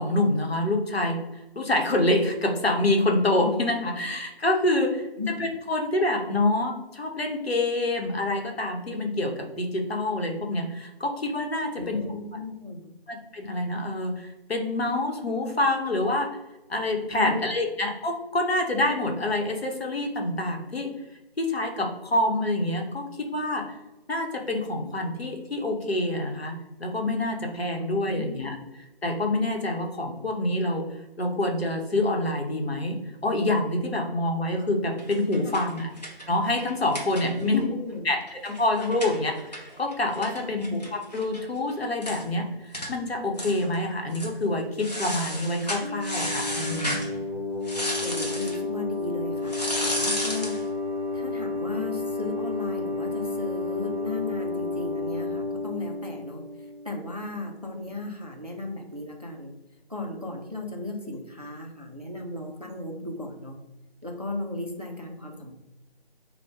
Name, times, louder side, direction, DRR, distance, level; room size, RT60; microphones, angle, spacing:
voice 1, 0.0-5.1 5.4-12.0 13.1-16.3 16.7-20.9 21.4-23.6 24.1-28.6 29.0-30.9 31.2-35.9 36.3-37.6 38.0-47.0, left 1 dB, 75° left, 2 dB, 0.9 m, -26 dB
voice 2, 11.8-12.8 17.1-17.4 27.8-28.5 35.4-35.6 37.2-38.0 40.4-40.5 48.0-50.7 51.1-56.5 56.9-59.5 59.9-63.6 64.0-65.5, left 2 dB, 40° right, 2 dB, 0.4 m, -35 dB
sound 1, 35.0-37.6 37.9-38.0 38.3-41.4 41.7-41.8 42.0-42.3 42.7-42.9 43.4-43.8 44.1-44.3 44.8-47.1 47.6-48.6 49.5-50.6, equal, 40° left, 0.7 m, -33 dB
sound 2, 45.8-57.2, left 3 dB, 20° right, 1.0 m, -31 dB
2.9 x 2.1 x 3.4 m, 1.0 s
figure-of-eight pair, 170°, 31 cm